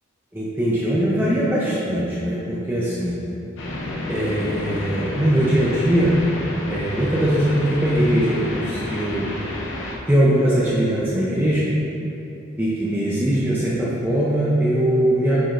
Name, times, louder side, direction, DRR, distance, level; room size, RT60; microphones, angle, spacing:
voice 1, 0.3-3.1 4.1-6.1 6.7-9.2 10.1-11.6 12.6-15.4, right 1 dB, 10° right, -8 dB, 0.6 m, -21 dB
sound 1, 3.6-10.0, left 1 dB, 65° left, 0.9 m, -30 dB
8.8 x 4.8 x 2.6 m, 3.0 s
head